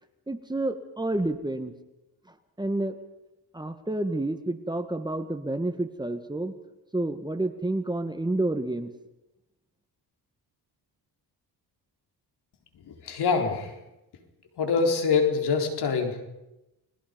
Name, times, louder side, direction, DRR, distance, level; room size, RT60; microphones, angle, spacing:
voice 1, 0.3-1.7 2.6-3.0 3.5-6.5 6.9-8.9, right 2 dB, 10° right, 8 dB, 1.7 m, -29 dB
voice 2, 12.8-13.7 14.6-16.2, left 5 dB, 70° left, 3 dB, 4.3 m, -25 dB
30.0 x 21.5 x 5.4 m, 0.95 s
cardioid pair, 95°, 40 cm